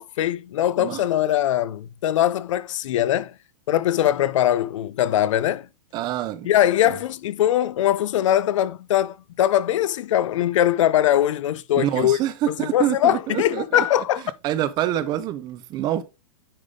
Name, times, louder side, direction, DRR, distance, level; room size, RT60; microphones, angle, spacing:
voice 1, 0.0-3.3 3.7-5.7 6.4-12.2 12.5-14.2, left 12 dB, 60° left, 0.5 m, -21 dB
voice 2, 5.9-6.5 6.8-7.0 11.8-13.8 14.4-16.0, right 12 dB, 25° right, 0.6 m, -26 dB
9.9 x 3.6 x 3.7 m
hypercardioid pair, 155°, 18 cm